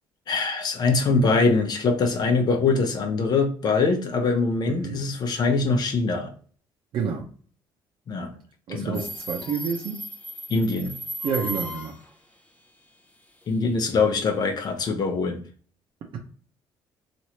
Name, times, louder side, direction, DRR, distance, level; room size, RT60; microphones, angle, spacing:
voice 1, 0.3-6.3 8.1-8.3 8.7-9.0 10.5-10.9 13.5-15.4, left 4 dB, 50° left, 5 dB, 0.7 m, -23 dB
voice 2, 4.7-5.0 6.9-7.2 8.7-10.0 11.2-11.9, right 6 dB, 65° right, 0 dB, 0.6 m, -29 dB
Subway metro underground, 8.9-12.1, equal, 15° left, 0.6 m, -35 dB
3.1 x 2.5 x 2.9 m, 0.43 s
cardioid pair, 90°, 9 cm